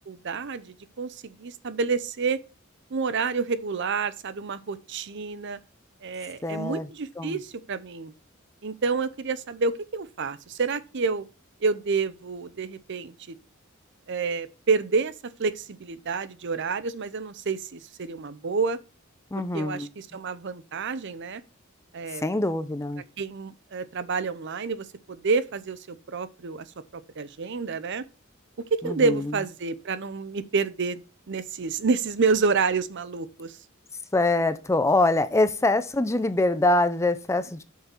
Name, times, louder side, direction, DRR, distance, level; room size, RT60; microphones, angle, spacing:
voice 1, 0.1-2.4 2.9-5.6 6.0-8.1 8.6-11.2 11.6-13.4 14.1-15.1 15.4-18.8 19.5-21.4 21.9-22.2 23.2-26.7 26.9-28.1 28.8-31.0 31.3-33.5, right 4 dB, 60° right, 0.6 m, -28 dB
voice 2, 6.4-6.9 7.2-7.4 19.3-19.9 22.2-23.0 28.8-29.3 34.1-37.6, left 2 dB, 15° left, 0.5 m, -24 dB
7.8 x 5.6 x 4.5 m
head